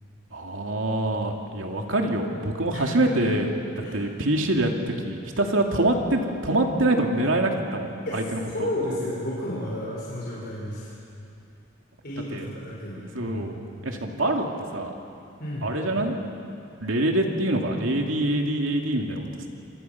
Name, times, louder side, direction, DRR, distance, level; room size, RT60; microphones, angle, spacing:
voice 1, 0.3-8.7 12.3-12.5 13.1-13.5 13.8-15.0 15.6-16.2 16.8-19.5, right 1 dB, 85° right, 2 dB, 2.5 m, -25 dB
voice 2, 2.7-3.3 3.8-4.0 8.0-10.9 12.0-13.6 15.4-15.7, left 1 dB, 50° left, -6 dB, 5.1 m, -32 dB
27.0 x 25.0 x 5.8 m, 2.7 s
head